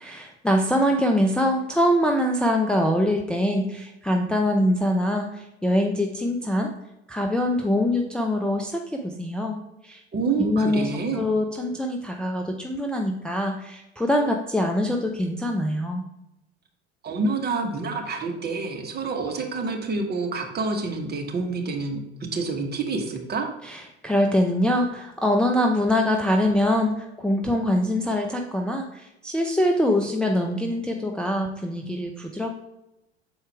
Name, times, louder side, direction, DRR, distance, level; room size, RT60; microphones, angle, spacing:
voice 1, 0.0-6.7 7.1-9.6 9.8-10.0 10.4-10.9 11.1-16.0 23.6-32.5, left 1 dB, 5° left, 1 dB, 0.6 m, -24 dB
voice 2, 10.1-11.2 17.0-22.0 22.3-23.5, right 3 dB, 30° right, 3 dB, 1.3 m, -27 dB
7.2 x 4.4 x 3.4 m, 0.92 s
hypercardioid pair, 70°, 32 cm